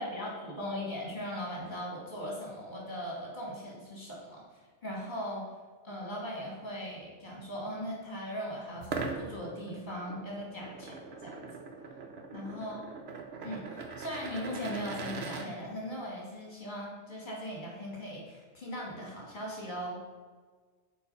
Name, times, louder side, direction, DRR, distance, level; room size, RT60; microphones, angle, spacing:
voice 1, 0.0-4.4 4.8-5.4 5.8-11.4 12.3-12.8 13.4-20.0, equal, 45° left, -3 dB, 2.4 m, -39 dB
sound 1, 8.8-15.5, right 4 dB, 75° right, 1.0 m, -41 dB
6.6 x 4.7 x 5.6 m, 1.5 s
omnidirectional pair, 1.1 m